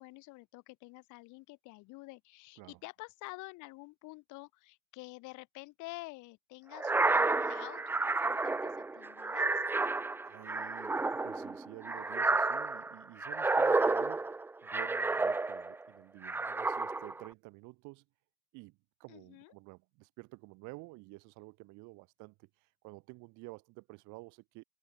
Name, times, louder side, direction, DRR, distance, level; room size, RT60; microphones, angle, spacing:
voice 1, 0.0-7.8 8.2-9.6 19.1-19.5, left 23 dB, 65° left, 6.1 m, -49 dB
sound 1, 6.7-15.8 16.2-17.3, right 3 dB, 5° right, 0.4 m, -31 dB
voice 2, 10.2-18.0 18.5-24.6, right 25 dB, 65° right, 1.3 m, -51 dB
open air
supercardioid pair, 100°, 32 cm